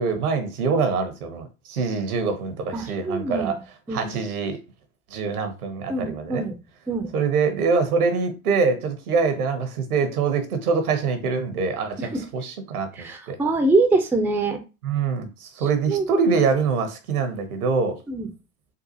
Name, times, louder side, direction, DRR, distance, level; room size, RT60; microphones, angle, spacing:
voice 1, 0.0-3.6 3.9-4.6 5.1-6.4 7.1-13.4 14.8-18.0, right 5 dB, 80° right, 0.9 m, -24 dB
voice 2, 2.7-3.5 3.9-4.2 5.9-6.6 6.9-7.1 12.0-12.2 13.0-14.6 15.6-16.1 18.1-18.3, right 3 dB, 5° right, 0.4 m, -24 dB
3.9 x 2.4 x 2.7 m
hypercardioid pair, 80°, 44 cm